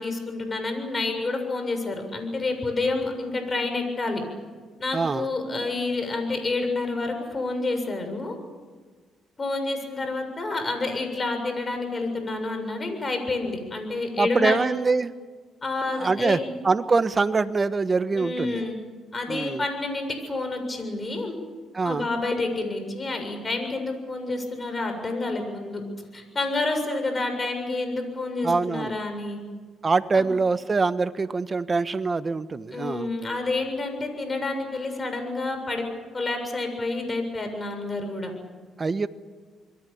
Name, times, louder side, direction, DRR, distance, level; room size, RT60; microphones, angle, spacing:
voice 1, 0.0-4.2 4.8-8.4 9.4-14.6 15.6-16.5 18.1-18.8 19.1-21.4 21.8-25.8 26.1-29.4 30.1-30.3 32.7-35.8 36.1-38.3, left 3 dB, 30° left, 6 dB, 7.3 m, -29 dB
voice 2, 4.9-5.3 14.2-15.1 15.9-18.6 19.3-19.6 21.7-22.1 28.4-28.9 29.8-33.1 38.8-39.1, right 4 dB, 30° right, 12 dB, 1.3 m, -24 dB
27.0 x 22.5 x 7.2 m, 1.5 s
cardioid pair, 90°, 0 cm